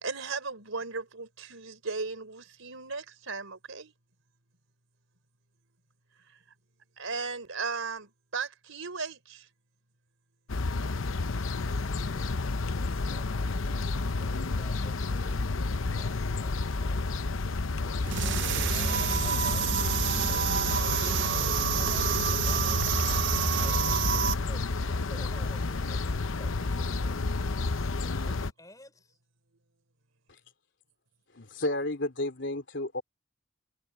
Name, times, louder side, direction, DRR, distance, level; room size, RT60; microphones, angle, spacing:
voice 1, 0.0-3.9 7.0-9.5, right 4 dB, 90° right, 3.9 m, -36 dB
sound 1, 10.5-28.5, left 3 dB, 80° left, 0.8 m, -30 dB
voice 2, 17.8-20.1 21.0-27.6 28.0-29.2, left 1 dB, 15° left, 5.3 m, -52 dB
sound 2, 18.1-24.4, right 7 dB, 60° right, 0.7 m, -28 dB
voice 3, 31.3-33.0, left 1 dB, 65° left, 3.2 m, -32 dB
head